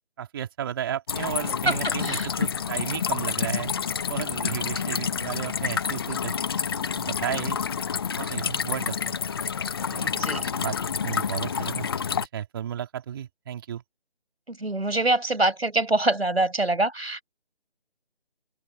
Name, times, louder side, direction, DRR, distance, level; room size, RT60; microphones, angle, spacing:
voice 1, 0.2-3.7 4.1-6.3 6.9-7.6 8.2-9.2 9.9-11.9 12.2-13.8, right 10 dB, 25° right, 3.5 m, -33 dB
sound 1, 1.1-12.3, left 7 dB, 25° left, 1.3 m, -28 dB
voice 2, 1.7-2.3 10.1-10.4 14.5-17.2, right 2 dB, 90° right, 6.2 m, -25 dB
figure-of-eight pair, 160°, 30 cm